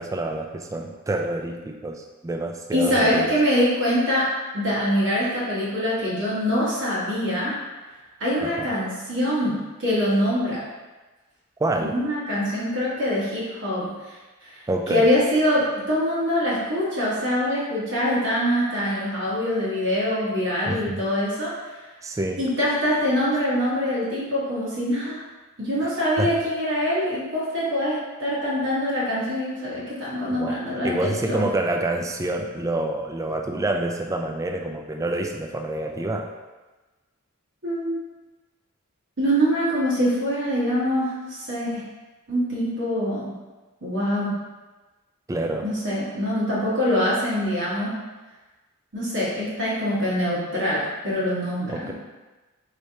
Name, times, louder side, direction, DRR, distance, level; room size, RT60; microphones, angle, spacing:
voice 1, 0.0-3.4 8.4-8.7 11.6-12.0 14.7-15.1 20.7-21.0 22.0-22.4 25.8-26.3 30.3-30.6 30.8-36.3 45.3-45.7 51.7-51.9, right 2 dB, 15° right, 3 dB, 0.3 m, -27 dB
voice 2, 2.7-4.2 4.5-7.5 8.2-10.6 11.8-14.2 14.4-21.5 22.4-25.2 25.6-31.4 37.6-38.0 39.2-41.8 42.3-43.3 43.8-44.3 45.6-47.9 48.9-51.9, equal, 55° right, -7 dB, 1.4 m, -24 dB
4.8 x 3.2 x 2.8 m, 1.2 s
head